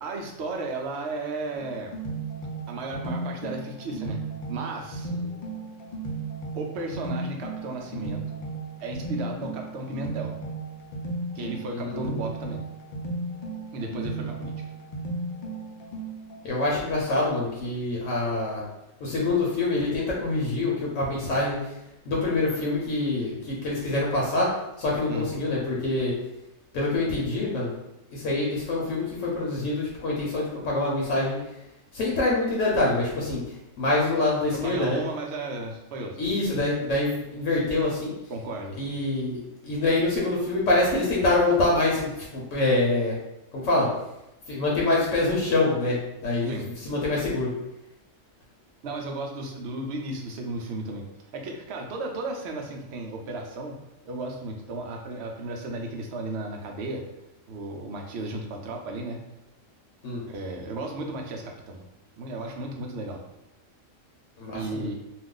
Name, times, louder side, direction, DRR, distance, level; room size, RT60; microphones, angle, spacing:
voice 1, 0.0-1.9 2.7-4.2 4.5-5.2 6.6-8.2 8.8-10.4 11.3-12.6 13.7-14.5 25.1-25.3 34.5-36.3 38.3-38.8 46.5-46.7 48.8-51.1 51.3-53.8 54.1-57.0 57.5-59.2 60.3-61.8 62.2-63.2 64.5-64.9, right 2 dB, 65° right, 2 dB, 0.7 m, -34 dB
sound 1, 1.6-16.4, right 2 dB, 55° left, 0.5 m, -35 dB
voice 2, 11.7-12.1 16.4-18.6 19.0-21.7 22.1-24.5 24.8-26.1 26.7-27.7 28.1-31.4 31.9-33.4 33.8-35.0 36.2-38.1 38.8-39.4 39.6-43.1 43.5-43.9 44.5-46.0 46.2-47.5 60.0-60.2 64.4-64.9, left 2 dB, 75° left, -4 dB, 1.0 m, -25 dB
2.4 x 2.4 x 3.6 m, 0.89 s
omnidirectional pair, 1.3 m